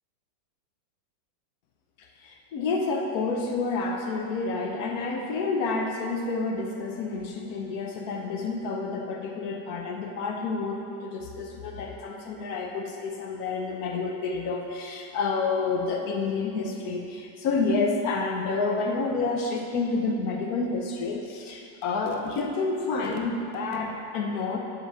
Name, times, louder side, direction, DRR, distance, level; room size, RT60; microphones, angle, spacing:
voice 1, 2.0-24.6, left 3 dB, 60° left, 2 dB, 1.2 m, -29 dB
7.1 x 5.3 x 6.0 m, 2.5 s
omnidirectional pair, 2.0 m